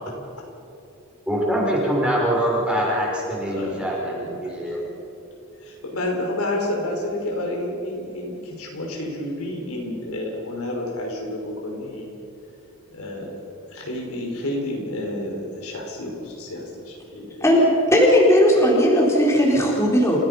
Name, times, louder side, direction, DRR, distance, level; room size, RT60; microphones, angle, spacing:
voice 1, 1.2-4.9, equal, 5° right, -4 dB, 5.2 m, -24 dB
voice 2, 3.5-4.3 5.6-12.2 12.9-13.4 13.7-17.3, left 1 dB, 85° left, 0 dB, 5.0 m, -30 dB
voice 3, 17.4-20.2, equal, 15° left, -4 dB, 4.1 m, -17 dB
29.5 x 16.0 x 5.7 m, 2.8 s
head